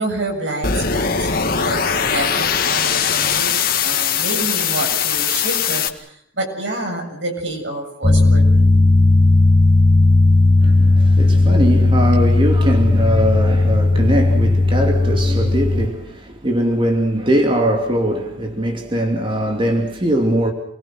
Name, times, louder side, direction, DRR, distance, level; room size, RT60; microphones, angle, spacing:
voice 1, 0.0-8.7, right 2 dB, 75° right, 7.4 m, -28 dB
sound 1, 0.6-5.9, left 7 dB, 50° left, 2.0 m, -20 dB
sound 2, 8.0-15.9, left 2 dB, 30° left, 1.6 m, -14 dB
voice 2, 10.6-20.5, right 1 dB, 25° right, 2.7 m, -20 dB
28.5 x 22.0 x 6.3 m
head